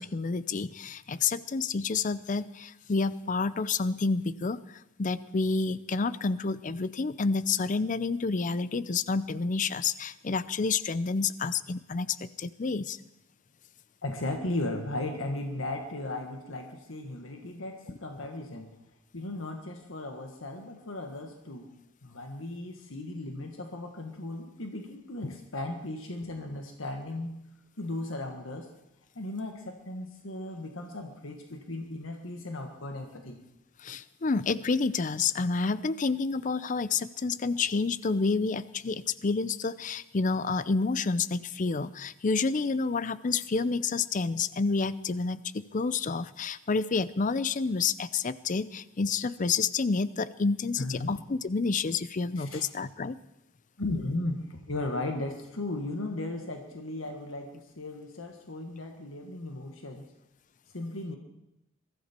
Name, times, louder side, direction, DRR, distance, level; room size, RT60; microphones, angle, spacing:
voice 1, 0.0-13.0 25.2-25.3 33.8-53.2, left 4 dB, 40° left, 17 dB, 0.5 m, -29 dB
voice 2, 14.0-18.7 19.1-21.7 22.0-27.3 27.8-28.7 29.1-33.4 50.8-51.1 52.4-52.6 53.8-60.0 60.7-61.2, left 2 dB, 90° left, 3 dB, 1.6 m, -36 dB
22.0 x 13.5 x 4.4 m, 0.86 s
head